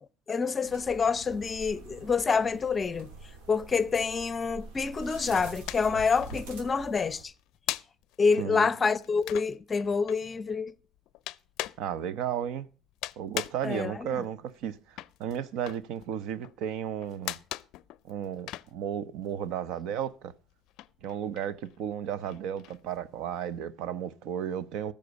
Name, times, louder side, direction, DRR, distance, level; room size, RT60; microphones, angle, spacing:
voice 1, 0.3-3.1 3.5-7.3 8.2-10.7 13.6-14.2, left 5 dB, 25° left, 0.6 m, -27 dB
sound 1, 0.6-7.2, right 3 dB, 85° right, 3.1 m, -45 dB
sound 2, 5.7-6.0 6.2-19.6 19.9-23.6, left 16 dB, 65° left, 0.4 m, -40 dB
voice 2, 8.4-8.7 11.8-12.7 13.2-17.4 18.0-20.3 21.0-24.9, right 9 dB, 65° right, 0.7 m, -34 dB
14.0 x 5.3 x 7.9 m
cardioid pair, 130°, 0 cm